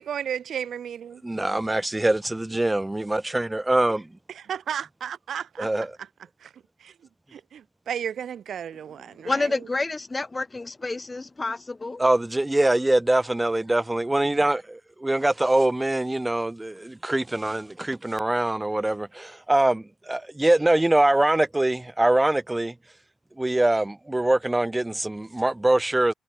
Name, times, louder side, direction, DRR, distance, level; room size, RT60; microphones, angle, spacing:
voice 1, 0.0-1.1 4.3-5.7 6.4-6.5 6.8-6.9 7.3-9.5, right 8 dB, 60° right, 0.7 m, -33 dB
voice 2, 1.3-4.1 5.6-5.9 12.0-22.7 23.4-26.1, right 1 dB, 10° right, 0.8 m, -23 dB
voice 3, 9.1-12.0, left 3 dB, 20° left, 1.1 m, -29 dB
cardioid pair, 90°, 0 cm